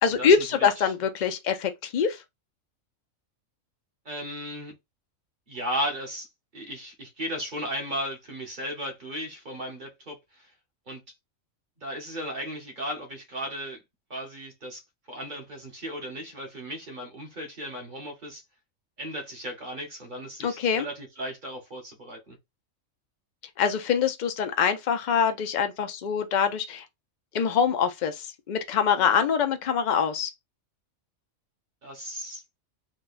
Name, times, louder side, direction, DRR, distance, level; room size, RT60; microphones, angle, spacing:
voice 1, 0.0-2.2 20.4-20.9 23.6-26.8 27.3-30.3, left 7 dB, 65° left, 0.4 m, -24 dB
voice 2, 4.0-4.7 5.5-6.3 6.5-10.5 10.9-11.0 11.8-13.8 14.1-14.8 15.1-18.4 19.0-22.4 29.0-29.2 31.8-32.4, equal, 40° right, 1.0 m, -35 dB
4.2 x 2.3 x 2.5 m
omnidirectional pair, 1.4 m